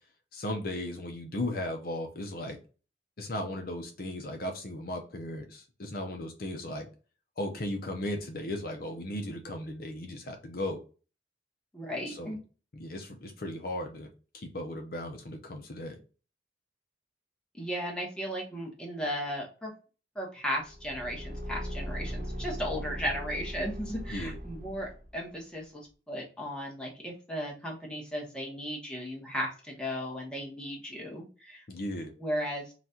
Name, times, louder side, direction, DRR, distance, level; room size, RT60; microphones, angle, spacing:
voice 1, 0.3-2.6 3.2-6.9 7.4-10.8 12.1-12.4 12.7-14.1 14.3-16.0 24.1-24.4 31.7-32.1, left 1 dB, 55° left, 4 dB, 0.6 m, -36 dB
voice 2, 11.7-12.4 17.5-19.7 20.1-31.6 32.2-32.7, equal, 5° left, -1 dB, 1.0 m, -36 dB
Car / Engine, 20.6-25.2, equal, 50° right, 1.0 m, -39 dB
4.0 x 2.4 x 4.3 m, 0.36 s
head